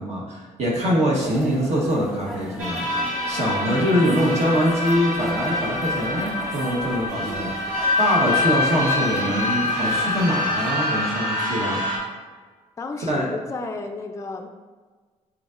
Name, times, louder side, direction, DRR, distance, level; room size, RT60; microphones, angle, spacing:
voice 1, 0.0-2.9 3.3-11.8 13.0-13.3, equal, 60° right, -3 dB, 1.0 m, -23 dB
sound 1, 1.2-10.7, equal, ahead, 0.8 m, -38 dB
sound 2, 2.6-12.0, left 2 dB, 85° right, 1.3 m, -25 dB
voice 2, 12.8-14.5, left 3 dB, 25° left, 5 dB, 0.3 m, -32 dB
5.0 x 4.0 x 2.4 m, 1.4 s
cardioid pair, 80°, 13 cm